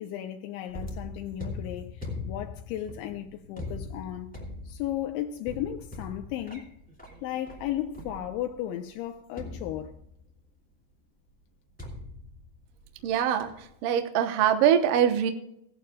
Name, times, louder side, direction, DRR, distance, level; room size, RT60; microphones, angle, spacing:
voice 1, 0.0-4.3 4.7-6.7 7.2-9.9, left 12 dB, 80° left, 3.0 m, -35 dB
sound 1, 0.7-8.6 9.4-10.4 11.8-13.1 13.4-13.7, left 2 dB, 5° left, 0.7 m, -41 dB
voice 2, 13.0-15.3, right 9 dB, 85° right, 1.9 m, -23 dB
17.0 x 11.5 x 2.3 m
omnidirectional pair, 5.5 m